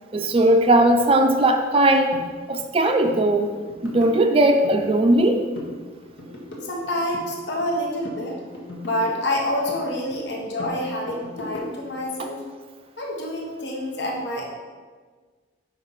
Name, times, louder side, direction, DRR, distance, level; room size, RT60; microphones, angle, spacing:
voice 1, 0.1-2.2 2.5-3.5 3.8-5.4, right 1 dB, 30° right, 6 dB, 0.4 m, -18 dB
sound 1, 2.1-2.3 2.6-2.8 3.0-3.2 3.5-4.8 5.1-5.8 6.0-7.8 8.0-9.8 10.1-12.0, left 1 dB, 85° left, 1.4 m, -38 dB
voice 2, 6.6-8.4 8.8-12.4 13.0-14.5, left 1 dB, 70° left, -1 dB, 1.1 m, -27 dB
5.4 x 4.8 x 5.5 m, 1.5 s
head